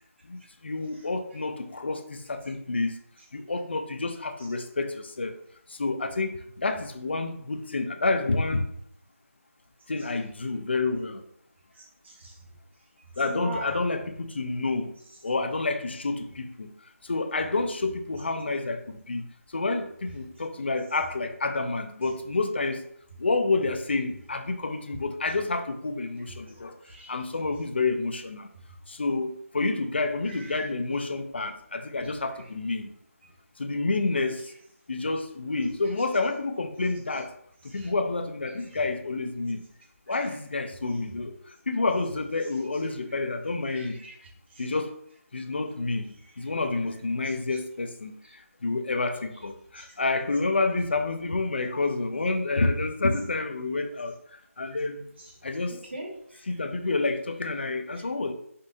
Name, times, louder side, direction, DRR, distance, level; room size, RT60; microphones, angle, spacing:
voice 1, 0.2-3.1 3.3-5.3 5.7-8.7 9.9-11.2 13.2-14.9 15.2-16.7 17.0-22.8 23.2-26.8 27.1-28.5 28.9-32.9 33.6-34.5 34.9-37.3 37.6-39.6 40.1-44.0 44.6-45.0 45.3-55.1 55.4-55.8 56.4-58.3, left 3 dB, 45° left, 7 dB, 0.6 m, -29 dB
voice 2, 11.8-12.3 13.2-13.7 26.8-27.1 37.7-37.9 40.2-40.3 43.7-44.1 49.8-49.9 55.9-56.4, right 1 dB, 50° right, -1 dB, 1.5 m, -40 dB
5.2 x 3.2 x 2.7 m, 0.70 s
figure-of-eight pair, 170°, 8 cm